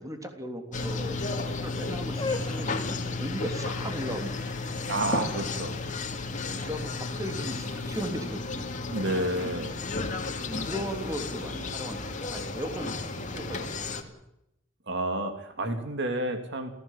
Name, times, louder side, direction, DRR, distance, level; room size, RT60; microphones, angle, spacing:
voice 1, 0.0-4.6 6.3-8.7 10.2-14.2, equal, 15° right, 5 dB, 3.3 m, -37 dB
sound 1, 0.7-14.0, left 3 dB, 40° left, 2.7 m, -33 dB
sound 2, 2.0-7.9, left 3 dB, 25° left, 2.4 m, -40 dB
voice 2, 4.8-5.8 8.9-9.8 14.9-16.7, right 1 dB, 65° right, 6 dB, 3.0 m, -30 dB
29.0 x 16.5 x 7.4 m, 0.84 s
head